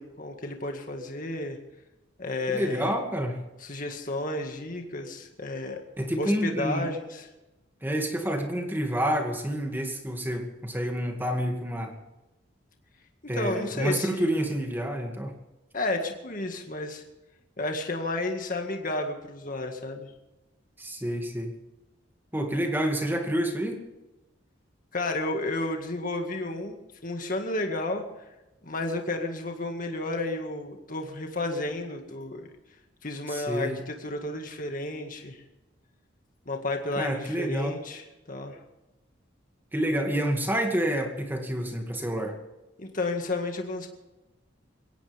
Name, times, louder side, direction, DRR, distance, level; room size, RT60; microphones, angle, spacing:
voice 1, 0.0-1.6 2.2-2.9 3.6-5.8 6.2-7.3 13.3-14.5 15.7-17.0 17.6-20.1 24.9-26.8 27.0-28.0 28.6-32.5 33.0-35.4 36.5-38.0 38.3-38.6 42.8-43.9, left 2 dB, 45° left, 3 dB, 1.9 m, -32 dB
voice 2, 2.5-3.4 6.0-6.9 7.8-11.9 13.3-15.3 20.8-21.5 22.3-23.8 33.3-33.8 37.0-37.8 39.7-42.4, equal, 10° right, 3 dB, 2.3 m, -28 dB
22.0 x 17.5 x 3.6 m, 1.0 s
head